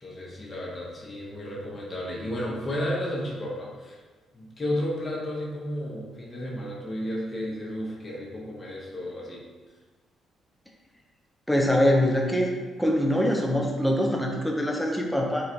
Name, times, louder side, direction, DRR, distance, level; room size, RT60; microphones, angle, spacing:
voice 1, 0.0-4.0 4.3-9.4, equal, 30° left, -4 dB, 1.1 m, -33 dB
voice 2, 11.5-12.5 12.8-15.4, equal, 5° left, 0 dB, 0.7 m, -23 dB
3.7 x 2.4 x 4.5 m, 1.4 s
cardioid pair, 90°, 0 cm